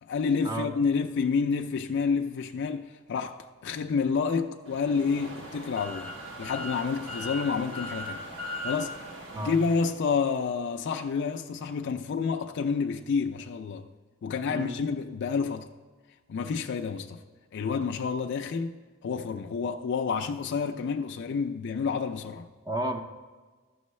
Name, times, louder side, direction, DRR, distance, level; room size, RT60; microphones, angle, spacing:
voice 1, 0.0-6.1 6.4-8.2 8.6-9.0 9.4-13.9 14.2-15.7 16.3-17.2 17.5-22.5, left 5 dB, 55° left, 0.4 m, -29 dB
sound 1, 4.7-9.9, equal, 60° right, 1.3 m, -39 dB
voice 2, 14.5-14.8 22.7-23.0, right 1 dB, 20° right, 0.5 m, -32 dB
13.5 x 6.2 x 3.1 m
head